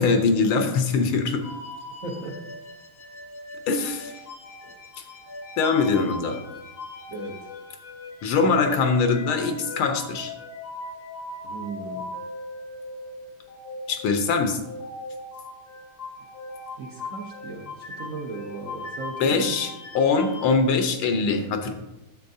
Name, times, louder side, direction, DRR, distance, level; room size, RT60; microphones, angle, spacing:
voice 1, 0.0-1.4 3.7-4.1 5.6-6.4 8.2-10.3 13.9-14.6 19.2-21.7, left 4 dB, 80° left, 6 dB, 1.7 m, -22 dB
sound 1, 1.4-20.5, left 2 dB, 40° left, 0.8 m, -39 dB
voice 2, 2.0-2.5 4.6-4.7 5.8-6.1 7.1-7.5 11.4-12.1 16.8-19.6, right 3 dB, 50° right, -1 dB, 1.1 m, -37 dB
10.0 x 7.5 x 2.7 m, 0.98 s
omnidirectional pair, 2.3 m